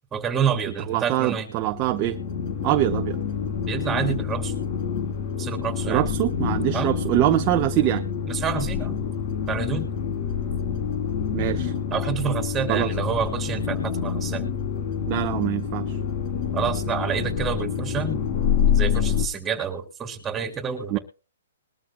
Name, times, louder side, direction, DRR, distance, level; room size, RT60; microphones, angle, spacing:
voice 1, 0.1-1.5 3.7-4.5 5.4-6.0 6.7-6.9 8.3-9.0 9.5-9.9 11.9-14.5 16.5-18.2 18.7-21.0, right 7 dB, 15° right, 3.3 m, -28 dB
voice 2, 0.9-2.2 2.6-3.2 5.9-8.0 11.3-11.7 12.7-12.9 15.0-16.0 20.9-21.0, right 15 dB, 30° right, 1.0 m, -24 dB
sound 1, 1.6-19.3, left 7 dB, 40° left, 3.1 m, -27 dB
22.0 x 13.0 x 2.2 m
hypercardioid pair, 145°, 0 cm